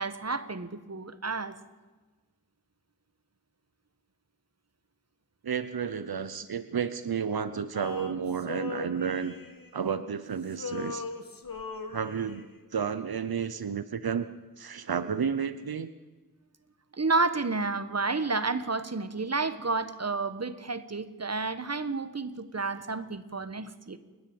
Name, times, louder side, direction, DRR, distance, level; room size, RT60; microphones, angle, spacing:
voice 1, 0.0-1.6 16.9-24.0, right 3 dB, 45° right, 11 dB, 1.4 m, -30 dB
voice 2, 5.4-9.3 9.7-11.1 11.9-14.3 14.6-15.9, right 7 dB, 85° right, 12 dB, 0.8 m, -31 dB
Male singing, 7.7-10.2 10.5-12.6, left 4 dB, 70° left, 2.0 m, -40 dB
29.5 x 10.5 x 8.8 m, 1.3 s
wide cardioid pair, 45°, 36 cm